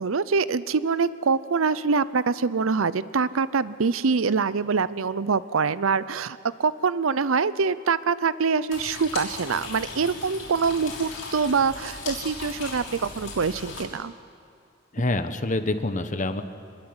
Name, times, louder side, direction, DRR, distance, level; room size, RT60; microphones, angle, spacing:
voice 1, 0.0-14.1, right 5 dB, 90° right, 16 dB, 0.6 m, -24 dB
sound 1, 8.7-13.8, left 3 dB, 75° left, 5.9 m, -37 dB
voice 2, 14.9-16.4, left 2 dB, 40° left, 9 dB, 1.1 m, -26 dB
25.5 x 21.0 x 8.0 m, 2.5 s
head